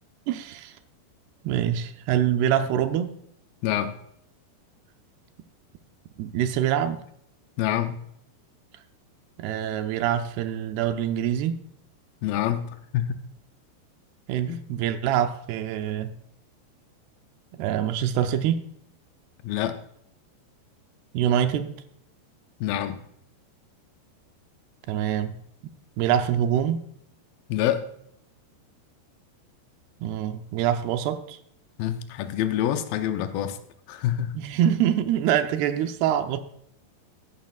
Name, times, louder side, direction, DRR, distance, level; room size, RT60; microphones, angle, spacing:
voice 1, 0.3-0.7 1.4-3.1 6.2-7.0 9.4-11.6 14.3-16.1 17.5-18.6 21.1-21.8 24.9-25.4 26.0-26.8 30.0-31.4 34.4-36.4, right 10 dB, 80° right, 9 dB, 2.5 m, -25 dB
voice 2, 3.6-4.0 7.6-8.0 12.2-13.2 14.5-14.6 19.4-19.8 22.6-23.0 27.5-27.9 31.8-33.6 33.9-34.4, left 11 dB, 85° left, 8 dB, 2.0 m, -26 dB
14.5 x 11.5 x 2.4 m, 0.71 s
omnidirectional pair, 4.9 m